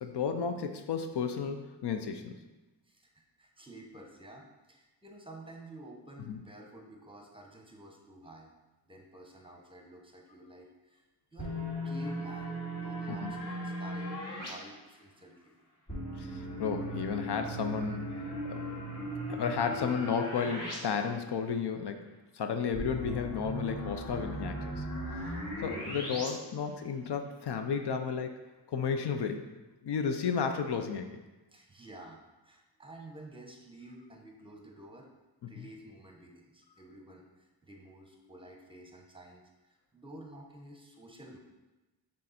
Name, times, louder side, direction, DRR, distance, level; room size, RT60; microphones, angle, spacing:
voice 1, 0.0-2.3 6.3-6.4 13.1-13.3 16.2-18.2 18.5-18.6 19.3-22.0 22.3-24.8 25.2-25.3 25.6-28.4 28.7-29.5 29.8-31.2 35.6-35.7, left 6 dB, 70° left, 7 dB, 0.6 m, -33 dB
voice 2, 2.8-8.5 8.9-11.0 11.3-11.5 11.8-15.5 31.5-32.2 32.4-35.1 35.5-41.4, right 1 dB, 10° right, 1 dB, 1.0 m, -51 dB
sound 1, 11.4-14.5 15.9-20.7 21.1-21.2 22.7-26.3, equal, 35° left, 2.0 m, -37 dB
6.4 x 3.8 x 4.2 m, 1.1 s
wide cardioid pair, 95°, 43 cm